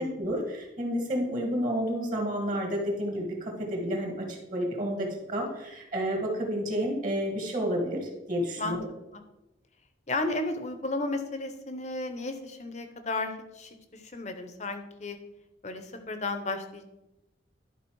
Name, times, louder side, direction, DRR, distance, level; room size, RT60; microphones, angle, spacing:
voice 1, 0.0-8.9, equal, 45° right, 1 dB, 1.6 m, -30 dB
voice 2, 10.1-15.2 15.6-16.8, left 2 dB, 40° left, 8 dB, 0.8 m, -34 dB
11.0 x 4.1 x 4.6 m, 0.95 s
head